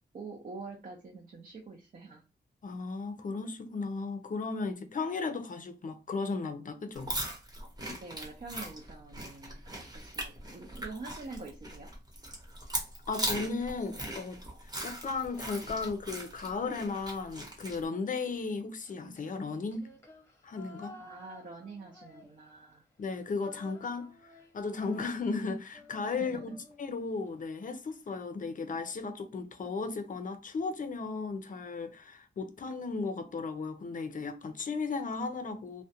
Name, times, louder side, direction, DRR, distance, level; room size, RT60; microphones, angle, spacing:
voice 1, 0.1-2.2 8.0-11.9 21.0-22.8 26.2-26.6, right 3 dB, 50° right, 0.5 m, -45 dB
voice 2, 2.6-7.1 13.1-19.8 20.4-21.0 23.0-24.1 24.5-26.5 26.8-35.8, left 4 dB, 50° left, 0.5 m, -35 dB
sound 1, 6.9-17.8, right 1 dB, 20° right, 0.8 m, -39 dB
Female singing, 18.8-22.7 23.0-27.3, left 2 dB, 15° left, 0.8 m, -54 dB
2.4 x 2.1 x 2.7 m
wide cardioid pair, 120°, 18 cm